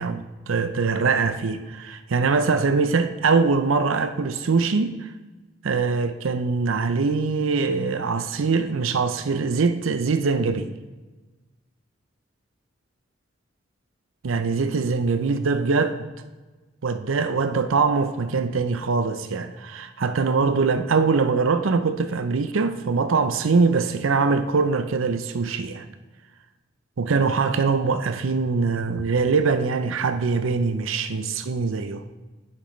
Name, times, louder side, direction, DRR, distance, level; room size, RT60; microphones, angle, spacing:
voice 1, 0.0-5.1 5.6-10.7 14.2-16.0 16.8-25.9 27.0-32.0, right 4 dB, 85° right, 0.6 m, -23 dB
9.4 x 7.3 x 3.2 m
head